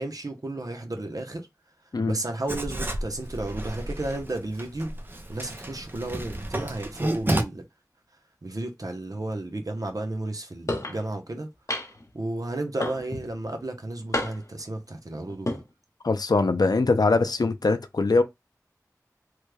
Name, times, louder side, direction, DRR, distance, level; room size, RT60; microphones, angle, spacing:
voice 1, 0.0-1.5 2.1-4.9 5.3-7.7 8.4-11.5 12.1-15.6, right 2 dB, 65° right, 0.8 m, -33 dB
Writing, 2.5-7.4, right 1 dB, 30° right, 0.6 m, -31 dB
sound 1, 10.7-11.0 11.7-12.1 12.8-13.3 14.1-14.6 15.3-15.6, left 1 dB, 50° left, 0.9 m, -30 dB
voice 2, 16.0-18.2, left 3 dB, 80° left, 0.4 m, -22 dB
3.2 x 2.2 x 3.2 m
wide cardioid pair, 45°, 7 cm